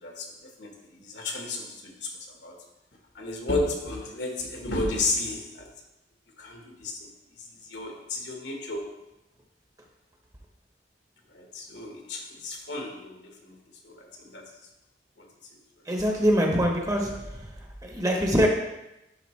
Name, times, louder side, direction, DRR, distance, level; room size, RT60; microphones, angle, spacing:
voice 1, 0.0-2.6 3.1-5.7 6.4-7.1 7.4-8.9 11.3-13.6 13.8-14.5 15.2-15.3, left 2 dB, 70° left, 1 dB, 1.3 m, -33 dB
voice 2, 15.9-17.5 17.8-18.5, equal, 20° right, 1 dB, 0.9 m, -24 dB
11.0 x 3.9 x 3.2 m, 0.94 s
head